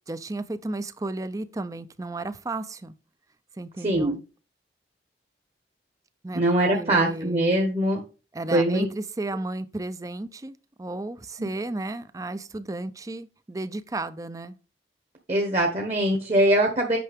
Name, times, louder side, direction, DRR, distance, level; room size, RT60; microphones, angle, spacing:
voice 1, 0.1-2.9 3.6-4.2 6.2-6.4 6.7-7.4 8.3-14.6, right 2 dB, 20° right, 0.4 m, -33 dB
voice 2, 3.8-4.1 6.3-8.0 8.5-8.9 15.3-17.0, right 1 dB, 35° right, 1.1 m, -22 dB
8.5 x 5.7 x 3.5 m
head